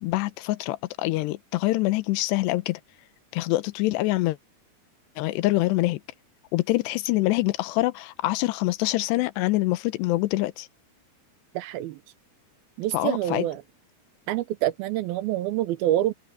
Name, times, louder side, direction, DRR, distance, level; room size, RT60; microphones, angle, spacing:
voice 1, 0.0-2.8 3.3-4.4 5.2-6.0 6.5-10.7 12.9-13.5, left 19 dB, 85° left, 3.0 m, -25 dB
voice 2, 11.6-12.0 12.8-13.6 14.3-16.1, right 13 dB, 75° right, 2.5 m, -26 dB
open air
omnidirectional pair, 4.7 m